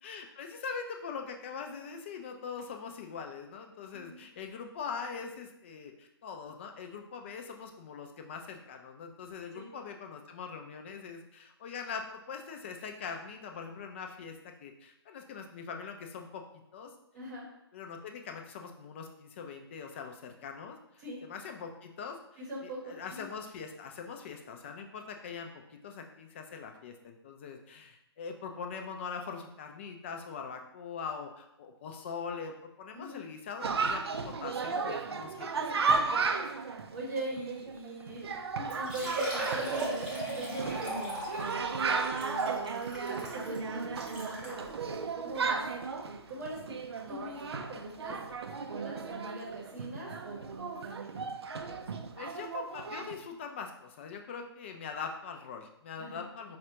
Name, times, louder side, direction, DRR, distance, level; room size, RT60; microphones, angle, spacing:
voice 1, 0.0-16.9 17.7-22.2 22.6-36.0 52.2-56.6, left 6 dB, 25° left, 4 dB, 0.3 m, -42 dB
voice 2, 17.1-17.4 21.0-21.2 22.4-23.3 32.9-33.2 36.6-45.6 46.0-46.8 47.1-51.2 56.0-56.2, right 2 dB, 40° right, -3 dB, 0.8 m, -42 dB
Chatter, 33.6-53.2, right 4 dB, 70° right, 0.4 m, -35 dB
Liquid, 38.2-38.3 38.7-44.6 45.3-45.4 45.8-45.9 47.6-47.7 47.8-47.9, right 2 dB, 5° right, 0.7 m, -38 dB
4.8 x 2.2 x 2.8 m, 0.82 s
figure-of-eight pair, 140°, 14 cm